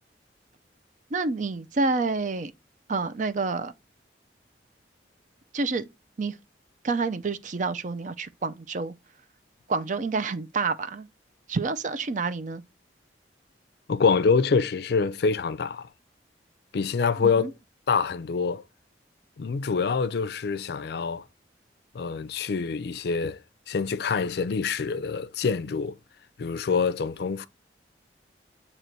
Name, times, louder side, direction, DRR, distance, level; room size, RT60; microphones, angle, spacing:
voice 1, 1.1-2.5 2.9-3.7 5.5-5.9 6.2-6.4 6.8-8.9 9.7-11.1 11.5-12.6 17.2-17.5, right 4 dB, 45° right, 0.5 m, -28 dB
voice 2, 13.9-15.9 16.7-17.5 17.9-18.6 19.4-21.2 21.9-23.4 23.7-26.0 26.4-27.5, left 5 dB, 65° left, 0.4 m, -25 dB
7.8 x 3.0 x 4.4 m
head